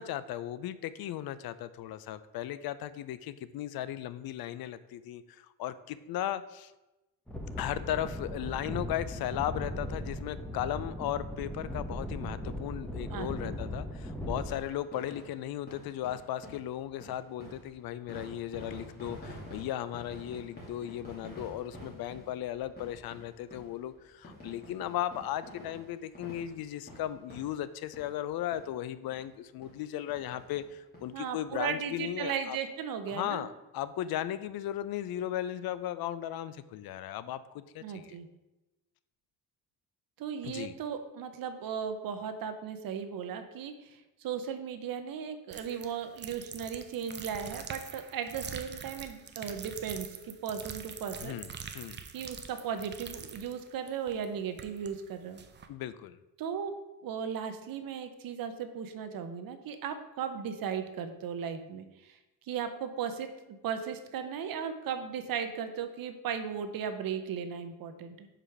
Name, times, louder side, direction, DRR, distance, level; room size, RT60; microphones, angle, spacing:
voice 1, 0.0-6.7 7.6-32.6 33.1-38.2 40.4-40.7 51.2-52.0 55.7-56.2, left 12 dB, 75° left, 14 dB, 0.5 m, -36 dB
sound 1, 7.3-14.5, equal, 5° left, 0.9 m, -38 dB
sound 2, 14.5-28.3 28.5-28.7 29.1-29.2 29.6-29.8 30.1-31.1 31.5-31.6 31.7-31.8, equal, 25° left, 2.3 m, -49 dB
voice 2, 31.1-33.5 37.8-38.3 40.2-51.4 52.1-55.4 56.4-56.7 57.0-62.2 62.5-68.3, right 7 dB, 65° right, 8 dB, 0.8 m, -36 dB
sound 3, 45.5-54.9 55.4-55.7, right 6 dB, 30° right, 0.5 m, -44 dB
5.0 x 4.9 x 5.7 m, 1.0 s
cardioid pair, 130°, 37 cm